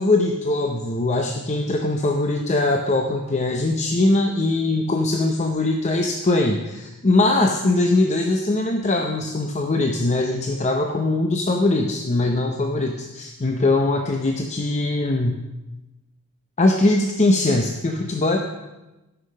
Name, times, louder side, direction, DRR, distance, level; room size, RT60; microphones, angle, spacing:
voice 1, 0.0-15.4 16.6-18.4, left 2 dB, 30° left, 3 dB, 0.6 m, -21 dB
11.5 x 6.0 x 6.4 m, 1.0 s
head